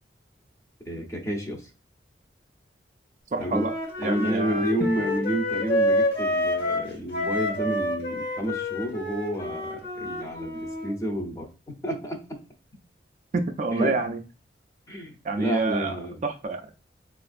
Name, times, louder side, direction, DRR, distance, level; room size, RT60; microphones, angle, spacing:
voice 1, 0.9-1.7 3.4-3.7 4.0-11.5 11.8-12.4 13.7-14.0 14.9-16.2, right 1 dB, 20° left, 2 dB, 0.7 m, -30 dB
voice 2, 3.3-4.7 13.3-14.2 15.2-16.7, right 3 dB, 45° right, 6 dB, 0.3 m, -28 dB
Wind instrument woodwind instrument, 3.5-10.9, left 1 dB, 60° left, 1.3 m, -28 dB
4.2 x 2.5 x 2.4 m, 0.32 s
head